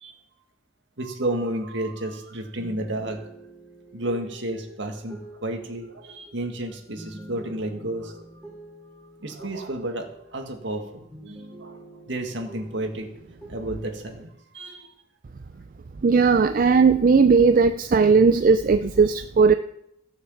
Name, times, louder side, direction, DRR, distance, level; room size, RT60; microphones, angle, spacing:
voice 1, 1.0-3.3 3.9-8.4 9.0-13.1 13.5-14.9, right 1 dB, 70° right, 4 dB, 1.9 m, -32 dB
sound 1, 2.6-10.8 11.1-14.2, right 1 dB, 5° left, 4.8 m, -46 dB
voice 2, 16.0-19.5, right 5 dB, 45° right, 10 dB, 0.4 m, -17 dB
15.0 x 6.6 x 7.2 m, 0.78 s
head